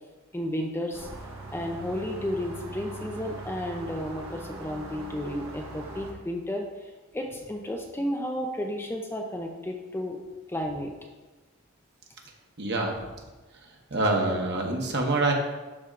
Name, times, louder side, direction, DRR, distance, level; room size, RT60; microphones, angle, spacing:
voice 1, 0.3-1.1 1.5-6.7 7.1-10.2 10.5-10.9, left 1 dB, 10° left, 2 dB, 0.5 m, -32 dB
sound 1, 0.9-6.1, right 2 dB, 70° right, 1.2 m, -41 dB
voice 2, 12.6-12.9 13.9-15.3, right 2 dB, 50° right, 0 dB, 1.1 m, -25 dB
12.0 x 4.3 x 2.5 m, 1.2 s
head